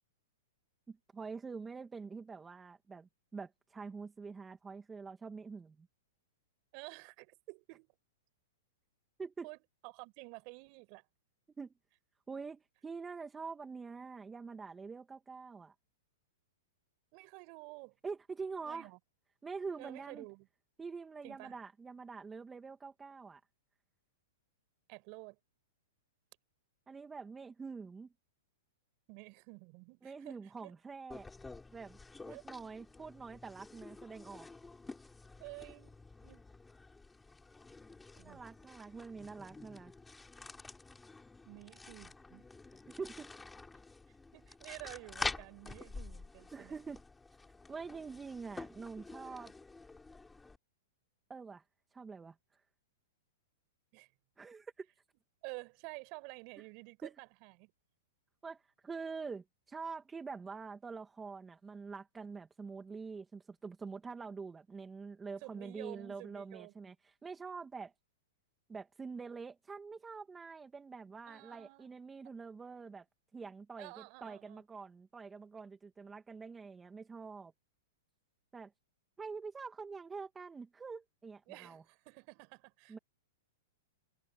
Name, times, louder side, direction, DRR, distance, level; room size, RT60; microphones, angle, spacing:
voice 1, 0.9-5.9 9.2-9.5 11.6-11.7 12.3-15.7 18.0-18.9 19.4-20.3 20.8-23.4 26.9-28.1 30.0-31.3 31.7-32.0 32.3-34.5 38.2-39.9 43.0-43.3 46.5-47.0 47.7-49.5 51.3-51.6 51.9-52.6 54.4-54.9 57.0-57.2 58.4-67.9 68.7-73.1 73.3-73.9 74.2-77.5 78.5-78.7 79.2-81.8 82.9-83.0, right 5 dB, 15° right, 2.2 m, -45 dB
voice 2, 6.7-7.9 9.4-11.1 17.1-17.9 18.6-19.0 19.8-20.5 21.2-21.6 24.9-25.4 29.1-30.7 32.3-32.4 35.4-35.9 36.2-36.4 38.2-38.4 41.4-42.5 44.3-46.8 53.9-54.1 55.4-57.7 65.4-66.7 71.3-71.9 73.8-74.6 81.5-83.0, right 32 dB, 45° right, 5.0 m, -51 dB
sound 1, 31.1-50.6, left 3 dB, 10° left, 7.9 m, -48 dB
hypercardioid pair, 120°, 0 cm